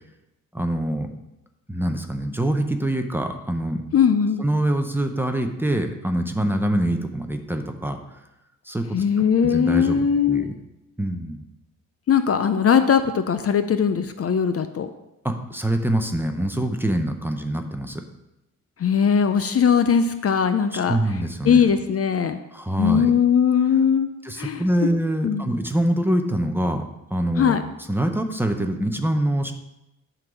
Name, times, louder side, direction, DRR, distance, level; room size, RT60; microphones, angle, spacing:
voice 1, 0.5-1.1 1.7-3.8 4.4-8.0 8.7-9.0 9.4-10.5 11.0-11.4 15.2-18.0 20.7-21.6 22.5-23.0 24.2-27.6 27.9-29.5, right 1 dB, 5° right, 5 dB, 0.6 m, -24 dB
voice 2, 3.9-4.5 8.9-10.4 12.1-14.9 18.8-21.0 21.4-22.4 22.8-24.1 24.4-24.6 25.2-25.5 27.4-27.6, left 7 dB, 45° left, 9 dB, 0.5 m, -20 dB
10.5 x 3.9 x 6.1 m, 0.92 s
wide cardioid pair, 135°, 33 cm